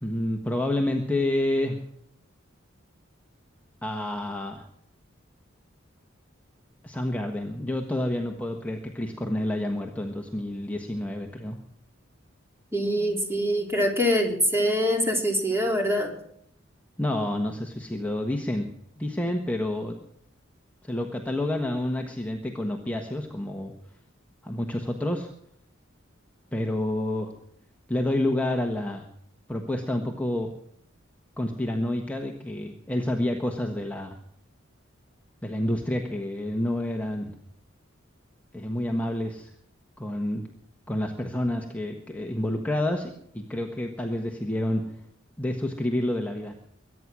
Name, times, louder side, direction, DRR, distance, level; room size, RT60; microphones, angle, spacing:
voice 1, 0.0-1.8 3.8-4.6 6.8-11.6 17.0-18.7 19.0-20.0 20.8-23.7 24.4-25.3 26.5-27.3 27.9-29.0 29.5-30.5 31.4-34.2 35.4-37.3 38.5-39.5 40.0-40.4 40.9-44.8 45.4-46.5, left 1 dB, 10° left, 2 dB, 1.3 m, -29 dB
voice 2, 12.7-16.1, equal, 10° right, 1 dB, 3.3 m, -24 dB
23.0 x 9.7 x 6.2 m, 0.69 s
head